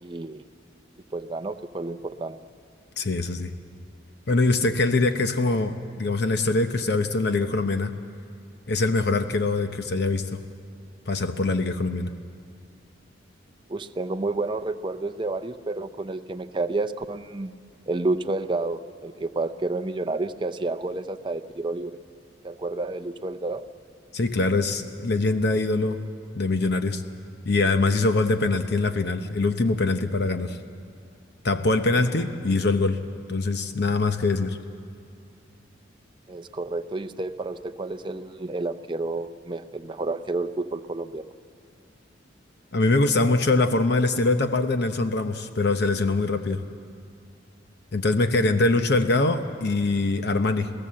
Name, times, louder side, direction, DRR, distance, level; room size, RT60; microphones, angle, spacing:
voice 1, 0.0-0.4 1.1-2.4 13.7-17.5 17.9-22.0 22.4-23.6 36.3-41.2, right 2 dB, 25° right, 9 dB, 0.5 m, -30 dB
voice 2, 3.0-3.5 4.3-7.9 8.7-10.4 11.1-12.1 24.1-26.0 26.4-27.0 27.5-30.6 31.4-33.0 33.3-34.6 42.7-46.6 47.9-50.7, left 2 dB, 60° left, 8 dB, 0.8 m, -23 dB
28.5 x 16.5 x 7.6 m, 2.5 s
head